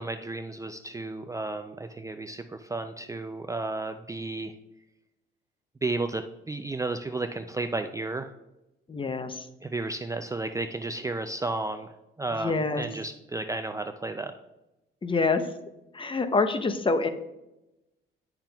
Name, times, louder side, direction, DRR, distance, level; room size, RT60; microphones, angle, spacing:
voice 1, 0.0-4.5 5.8-8.3 9.6-11.9 12.2-14.3, right 2 dB, 15° right, 7 dB, 0.4 m, -33 dB
voice 2, 8.9-9.5 12.4-12.8 15.0-15.5 15.9-17.1, left 3 dB, 25° left, 9 dB, 0.7 m, -26 dB
10.5 x 5.9 x 2.3 m, 0.93 s
cardioid pair, 90°, 20 cm